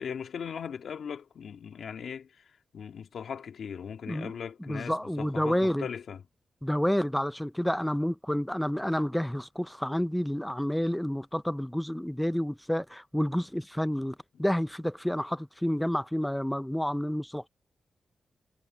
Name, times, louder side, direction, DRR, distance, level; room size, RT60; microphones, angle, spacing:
voice 1, 0.0-6.2, left 7 dB, 80° left, 2.1 m, -39 dB
voice 2, 4.7-5.9 6.6-17.5, equal, 5° left, 0.5 m, -29 dB
cardioid pair, 60°, 0 cm